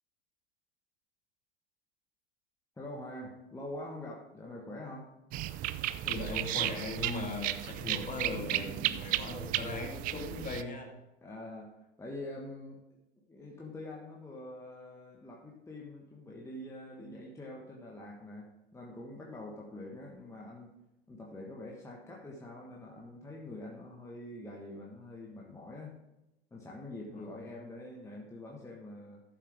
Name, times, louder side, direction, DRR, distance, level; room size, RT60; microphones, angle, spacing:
voice 1, 2.8-5.1 11.2-13.0 13.3-20.7 21.1-26.0 26.5-29.2, left 1 dB, 10° left, -2 dB, 1.4 m, -45 dB
sound 1, 5.3-10.6, right 14 dB, 25° right, 0.4 m, -34 dB
voice 2, 6.0-10.9 27.1-27.4, left 3 dB, 25° left, 3 dB, 1.9 m, -39 dB
13.0 x 7.4 x 3.5 m, 0.95 s
hypercardioid pair, 95°, 34 cm